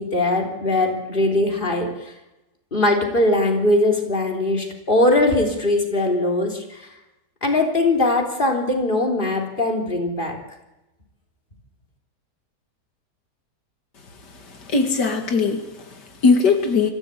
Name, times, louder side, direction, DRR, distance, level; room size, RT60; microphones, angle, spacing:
voice 1, 0.0-2.1 2.7-6.9 7.4-10.4, left 2 dB, 30° left, 1 dB, 3.7 m, -21 dB
voice 2, 14.2-16.9, left 4 dB, 90° left, 5 dB, 2.6 m, -20 dB
25.5 x 15.0 x 8.3 m, 0.98 s
omnidirectional pair, 1.8 m